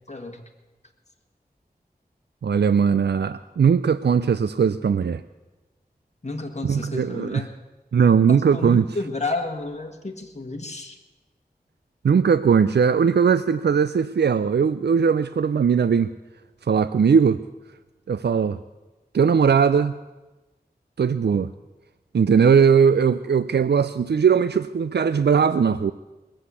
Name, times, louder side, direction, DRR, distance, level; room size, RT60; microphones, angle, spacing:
voice 1, 0.1-0.4 6.2-7.5 8.3-11.0, left 2 dB, 40° left, 3 dB, 1.8 m, -31 dB
voice 2, 2.4-5.2 6.6-7.4 7.9-8.9 12.0-16.1 16.6-17.4 18.1-18.6 19.1-19.9 21.0-21.5 22.1-25.9, right 6 dB, 90° right, 13 dB, 0.4 m, -19 dB
20.0 x 7.8 x 8.3 m, 1.1 s
wide cardioid pair, 45°, 17 cm